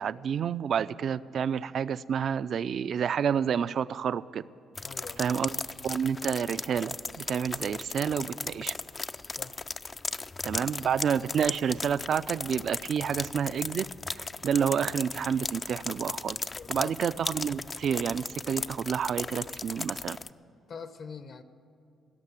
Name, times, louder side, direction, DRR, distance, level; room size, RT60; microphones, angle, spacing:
voice 1, 0.0-4.4 5.2-5.5 5.8-8.7 10.4-13.9 14.2-16.4 16.7-20.2, right 7 dB, 60° right, 16 dB, 0.3 m, -29 dB
voice 2, 4.8-5.3 9.3-9.5 16.5-16.9 20.7-21.4, left 5 dB, 55° left, 11 dB, 0.8 m, -43 dB
sound 1, 4.8-20.3, left 3 dB, 25° left, 0.3 m, -37 dB
17.0 x 6.6 x 9.7 m, 2.7 s
cardioid pair, 90°, 0 cm